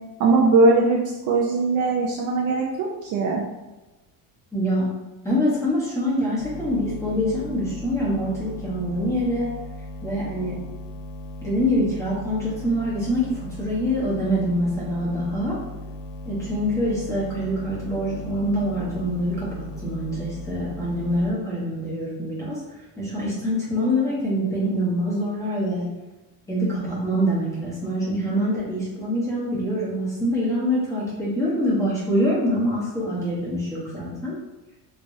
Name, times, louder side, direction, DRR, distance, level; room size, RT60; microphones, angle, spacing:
voice 1, 0.2-1.0 1.3-3.4, right 3 dB, 45° right, -2 dB, 0.5 m, -20 dB
voice 2, 4.5-4.9 5.2-9.5 10.0-10.6 11.4-13.3 13.6-15.6 16.3-22.6 23.0-25.9 26.5-34.3, equal, 5° left, -8 dB, 0.9 m, -25 dB
sound 1, 6.4-21.3, left 1 dB, 70° left, 0.6 m, -37 dB
3.3 x 3.3 x 2.6 m, 1.1 s
cardioid pair, 170°, 43 cm